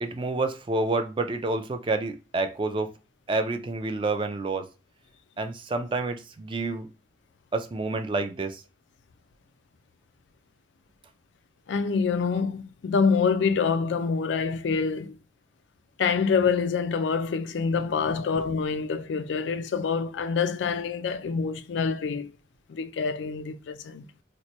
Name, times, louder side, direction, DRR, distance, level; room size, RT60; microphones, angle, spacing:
voice 1, 0.0-2.9 3.3-4.7 5.4-6.9 7.5-8.6 18.2-18.3, right 3 dB, 30° right, 0.3 m, -28 dB
voice 2, 11.7-15.2 16.0-22.3 22.7-24.1, left 5 dB, 80° left, 0.4 m, -26 dB
3.0 x 2.1 x 4.1 m
head